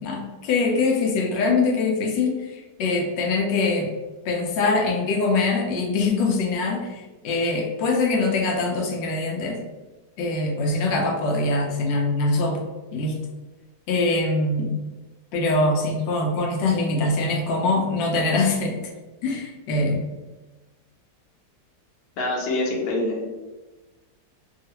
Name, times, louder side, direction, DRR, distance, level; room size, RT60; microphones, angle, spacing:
voice 1, 0.0-3.9 4.2-9.6 10.2-13.2 13.9-14.7 15.3-18.8 19.2-20.0, left 3 dB, 90° left, 1 dB, 1.3 m, -23 dB
voice 2, 22.2-23.3, left 2 dB, 65° left, -1 dB, 1.2 m, -25 dB
3.1 x 2.4 x 2.8 m, 1.2 s
omnidirectional pair, 1.9 m